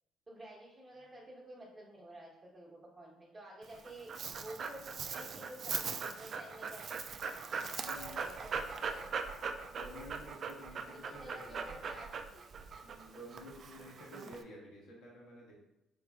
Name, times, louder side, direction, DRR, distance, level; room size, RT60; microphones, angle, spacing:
voice 1, 0.3-6.9 7.8-9.2 10.8-12.6, right 1 dB, 20° right, -6 dB, 1.0 m, -51 dB
Dog, 3.6-14.4, right 5 dB, 55° right, 0.3 m, -40 dB
voice 2, 7.8-8.3 9.7-11.8 12.8-15.6, equal, 70° left, -4 dB, 1.3 m, -51 dB
3.8 x 3.3 x 2.3 m, 0.93 s
hypercardioid pair, 55°, 0 cm